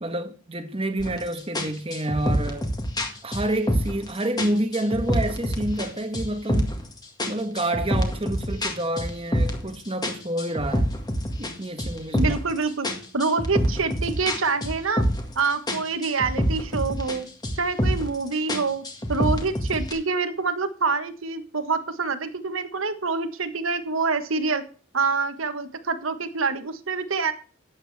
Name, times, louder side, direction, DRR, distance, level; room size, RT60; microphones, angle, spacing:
voice 1, 0.0-2.7 3.2-6.7 7.3-10.9 11.4-12.4, right 1 dB, 30° right, 1.3 m, -28 dB
sound 1, 1.0-1.2 1.6-4.1 4.4-5.9 6.1-6.9 7.2-9.7 10.0-12.5 12.8-15.4 15.7-17.2 17.4-18.2 18.5-19.9, equal, 20° left, 1.9 m, -26 dB
voice 2, 12.1-15.0 15.3-17.3 17.6-24.6 24.9-27.3, right 4 dB, 80° right, 1.4 m, -26 dB
12.5 x 9.1 x 3.5 m
head